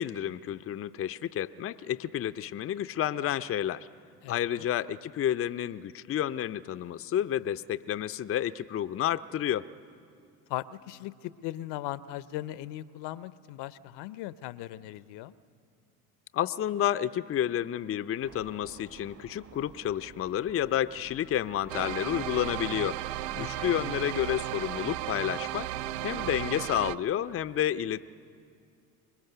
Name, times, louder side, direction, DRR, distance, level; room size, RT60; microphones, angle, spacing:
voice 1, 0.0-3.9 4.3-9.6 16.3-23.0 23.4-25.7 26.0-28.0, left 11 dB, 30° left, 11 dB, 0.5 m, -30 dB
voice 2, 4.2-4.7 10.5-15.3 23.3-23.8, left 14 dB, 60° left, 16 dB, 0.8 m, -39 dB
sound 1, 18.2-26.3, right 6 dB, 40° right, 1.6 m, -54 dB
sound 2, 21.7-27.0, right 14 dB, 75° right, 0.6 m, -35 dB
25.0 x 20.5 x 6.8 m, 2.4 s
hypercardioid pair, 70°, 46 cm